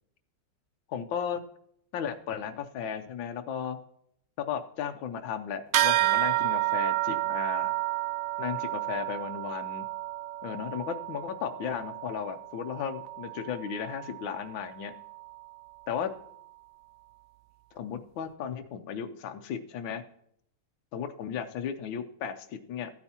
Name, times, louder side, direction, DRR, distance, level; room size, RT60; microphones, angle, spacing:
voice 1, 0.9-1.4 1.9-3.8 4.4-7.7 8.4-9.8 10.4-14.9 15.9-16.1 17.7-20.0 20.9-22.9, left 8 dB, 90° left, 7 dB, 1.5 m, -35 dB
sound 1, 5.7-15.5, right 15 dB, 85° right, 0.7 m, -31 dB
15.5 x 8.9 x 2.9 m, 0.71 s
omnidirectional pair, 2.0 m